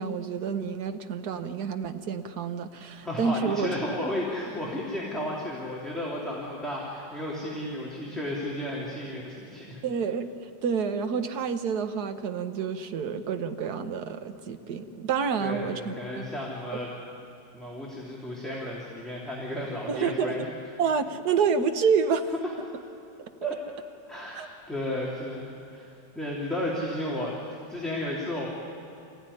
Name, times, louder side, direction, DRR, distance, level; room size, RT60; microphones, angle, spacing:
voice 1, 0.0-3.7 9.8-10.3 10.6-16.3 19.9-20.5 20.8-22.3 23.4-23.5 24.4-24.5, right 6 dB, 65° right, 8 dB, 1.6 m, -28 dB
voice 2, 3.0-9.8 15.4-16.9 17.5-20.4 23.4-23.5 24.1-28.5, left 1 dB, ahead, -5 dB, 2.8 m, -33 dB
26.0 x 15.5 x 9.9 m, 2.6 s
omnidirectional pair, 1.9 m